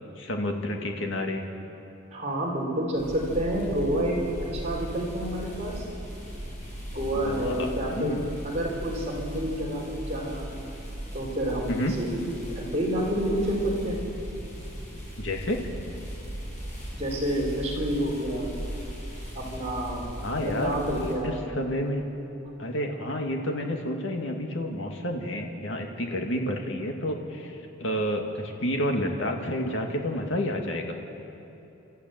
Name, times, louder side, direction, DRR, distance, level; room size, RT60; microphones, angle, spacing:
voice 1, 0.2-1.4 7.2-8.3 11.7-12.0 15.2-15.6 20.2-22.0 22.6-31.0, left 1 dB, 65° left, 2 dB, 2.3 m, -30 dB
voice 2, 2.1-5.8 6.9-8.1 8.4-10.5 11.1-12.3 12.5-14.0 17.0-18.5 19.3-20.0 20.3-21.4 26.3-26.5, right 1 dB, 35° right, -3 dB, 4.8 m, -29 dB
sound 1, 2.9-21.1, equal, 35° left, 7.1 m, -38 dB
28.5 x 13.5 x 9.4 m, 2.8 s
head